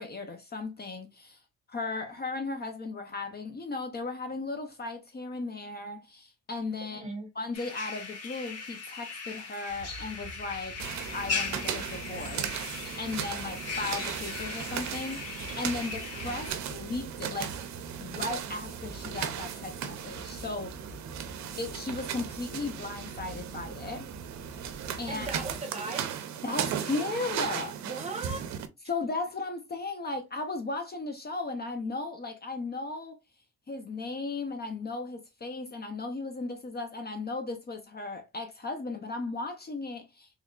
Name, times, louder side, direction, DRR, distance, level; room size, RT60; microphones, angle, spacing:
voice 1, 0.0-1.4 1.7-7.1 7.3-10.8 11.1-12.7 13.0-17.6 18.0-20.7 21.6-24.1 25.0-25.3 26.4-27.8 28.9-33.2 33.7-40.4, left 3 dB, 30° left, 0.7 m, -36 dB
voice 2, 6.9-7.3 25.1-26.1 27.8-28.4, right 3 dB, 20° right, 1.1 m, -38 dB
sound 1, 7.5-16.5, left 4 dB, 55° left, 1.5 m, -38 dB
sound 2, 9.7-25.6, right 2 dB, 10° left, 2.1 m, -47 dB
sound 3, 10.8-28.7, right 9 dB, 65° right, 0.6 m, -37 dB
3.5 x 3.1 x 2.3 m
cardioid pair, 90°, 30 cm